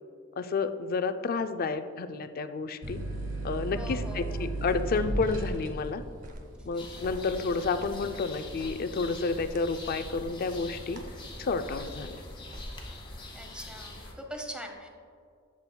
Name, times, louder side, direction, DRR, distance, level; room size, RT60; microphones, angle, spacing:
voice 1, 0.4-3.0 3.4-6.0 6.7-11.0 11.4-12.2, left 4 dB, 45° left, 10 dB, 0.4 m, -30 dB
sound 1, 2.8-10.1 10.5-11.2, right 1 dB, 65° right, 1.5 m, -36 dB
voice 2, 3.7-4.5 6.7-7.0 13.3-14.9, equal, 5° right, 3 dB, 0.8 m, -43 dB
sound 2, 4.3-12.9, equal, 40° right, 0.7 m, -48 dB
sound 3, 6.8-14.1, left 2 dB, 25° left, 1.3 m, -43 dB
11.5 x 7.3 x 2.2 m, 2.3 s
head